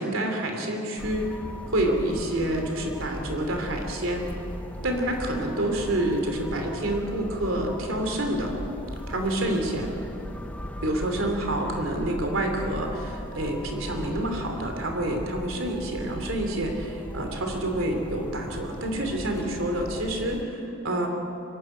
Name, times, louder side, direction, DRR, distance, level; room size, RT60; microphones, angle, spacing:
voice 1, 0.0-1.4 1.7-4.2 4.8-8.5 9.1-9.9 10.8-21.1, right 1 dB, 80° right, 3 dB, 3.1 m, -28 dB
sound 1, 1.0-20.4, equal, 5° left, 0.7 m, -38 dB
24.0 x 12.0 x 9.1 m, 2.8 s
head